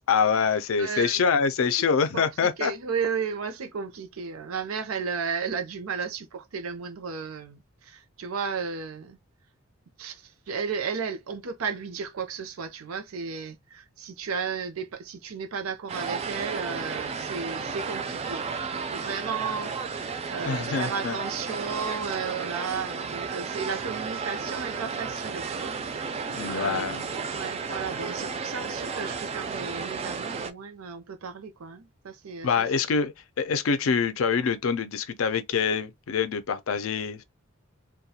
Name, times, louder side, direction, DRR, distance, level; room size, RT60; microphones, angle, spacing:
voice 1, 0.1-2.7 20.5-21.2 26.3-27.0 32.4-37.2, left 6 dB, 75° left, 0.4 m, -25 dB
voice 2, 0.8-1.2 2.1-2.3 2.6-9.2 10.0-25.8 26.1-27.0 27.3-32.7 32.9-33.0, right 5 dB, 85° right, 0.5 m, -34 dB
sound 1, 15.9-30.5, right 5 dB, 30° right, 0.3 m, -33 dB
2.3 x 2.2 x 2.7 m
head